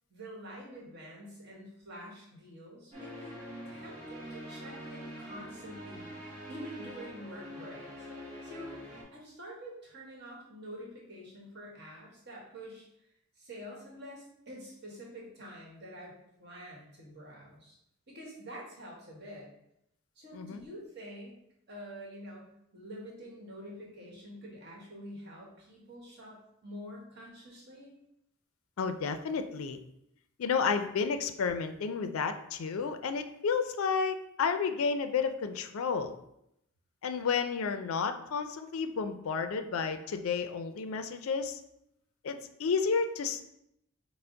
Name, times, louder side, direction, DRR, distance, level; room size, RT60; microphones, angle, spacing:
voice 1, 0.1-3.3 3.7-6.1 6.5-8.1 8.4-8.8 9.1-12.9 13.4-16.1 16.4-17.8 18.1-19.5 20.2-21.3 21.7-27.9, equal, 50° right, -3 dB, 1.3 m, -47 dB
sound 1, 2.9-9.0, equal, 30° right, 1.4 m, -45 dB
voice 2, 20.3-20.6 28.8-29.8 30.4-36.1 37.0-41.6 42.2-43.5, left 5 dB, 75° left, 8 dB, 0.4 m, -31 dB
5.6 x 2.0 x 3.8 m, 0.79 s
head